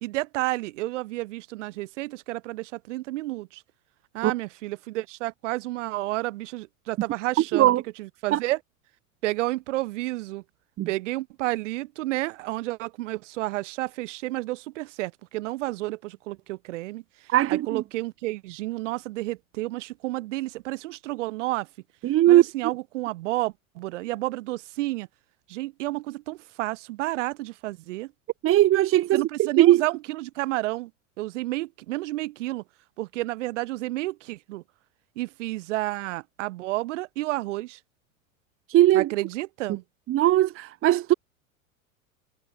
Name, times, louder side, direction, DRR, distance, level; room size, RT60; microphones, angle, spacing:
voice 1, 0.0-3.6 4.1-7.7 8.0-8.6 9.2-10.4 10.9-21.7 22.3-25.1 25.5-28.1 29.1-30.9 31.2-32.6 33.0-34.6 35.2-37.8 38.9-39.8, right 18 dB, 60° right, 3.1 m, -31 dB
voice 2, 17.3-17.8 22.0-22.4 28.4-29.8 38.7-39.1 40.1-41.1, right 14 dB, 30° right, 1.4 m, -19 dB
figure-of-eight pair, 90°, 41 cm